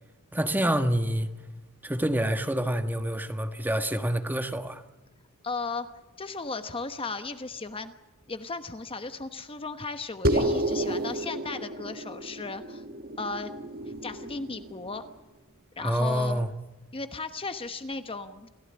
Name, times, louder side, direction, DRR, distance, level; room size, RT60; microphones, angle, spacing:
voice 1, 0.3-1.3 1.8-4.8 15.8-16.5, right 1 dB, 10° right, 1.3 m, -27 dB
voice 2, 5.4-5.9 6.2-8.0 8.3-12.8 13.2-13.5 14.0-15.0 15.8-16.4 16.9-18.5, left 3 dB, 25° left, 1.1 m, -35 dB
sound 1, 10.2-15.0, right 1 dB, 45° right, 1.6 m, -31 dB
28.0 x 15.5 x 8.8 m
head